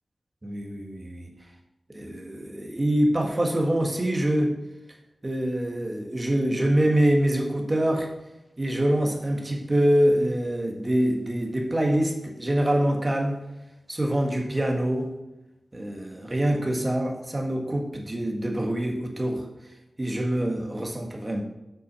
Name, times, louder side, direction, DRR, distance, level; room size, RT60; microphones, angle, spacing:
voice 1, 0.4-1.3 1.9-4.5 5.2-8.1 8.6-13.4 13.9-15.1 15.7-19.4 20.0-21.4, right 1 dB, 25° right, 1 dB, 1.7 m, -25 dB
8.0 x 6.1 x 5.5 m, 0.97 s
wide cardioid pair, 105°, 0 cm